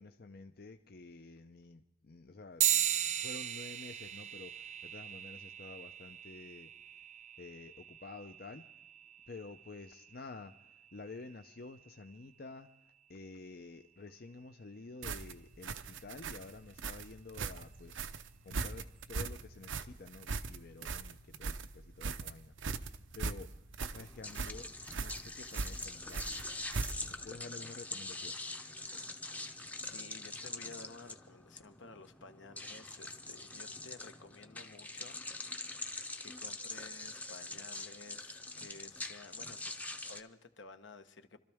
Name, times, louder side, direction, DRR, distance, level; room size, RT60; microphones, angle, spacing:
voice 1, 0.0-2.7 3.1-6.7 7.4-8.7 9.3-12.7 13.1-18.1 18.4-23.6 23.9-26.5 27.1-28.4, left 3 dB, 50° left, 0.6 m, -50 dB
sound 1, 2.6-12.4, right 11 dB, 35° right, 0.4 m, -38 dB
sound 2, 15.0-27.2, right 4 dB, 85° right, 0.7 m, -40 dB
sound 3, 23.8-40.2, left 2 dB, 10° left, 0.7 m, -44 dB
voice 2, 29.9-39.8 40.0-41.4, left 3 dB, 75° left, 1.1 m, -54 dB
25.5 x 13.5 x 3.5 m
head